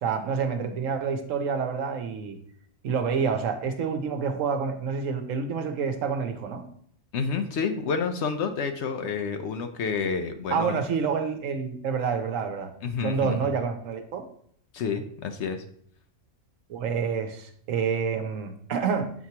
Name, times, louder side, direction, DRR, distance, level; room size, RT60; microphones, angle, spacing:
voice 1, 0.0-2.4 2.8-6.6 10.5-12.7 13.0-14.3 16.7-19.1, right 6 dB, 75° right, 6 dB, 1.1 m, -28 dB
voice 2, 7.1-10.8 12.8-13.5 14.7-15.6, left 5 dB, 65° left, 7 dB, 0.8 m, -29 dB
8.0 x 4.6 x 2.8 m, 0.62 s
omnidirectional pair, 1.4 m